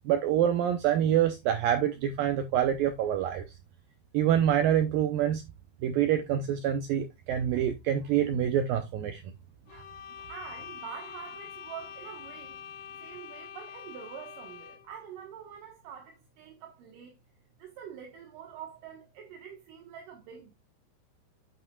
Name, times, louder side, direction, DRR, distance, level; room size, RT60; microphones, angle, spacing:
voice 1, 0.1-3.4 4.1-5.4 5.8-9.2 9.7-9.8, right 10 dB, 80° right, 2.0 m, -26 dB
sound 1, 9.7-15.0, left 8 dB, 80° left, 1.9 m, -45 dB
voice 2, 10.3-12.6 13.0-17.2 17.6-20.5, right 8 dB, 65° right, 2.5 m, -45 dB
9.0 x 7.8 x 2.3 m
omnidirectional pair, 5.1 m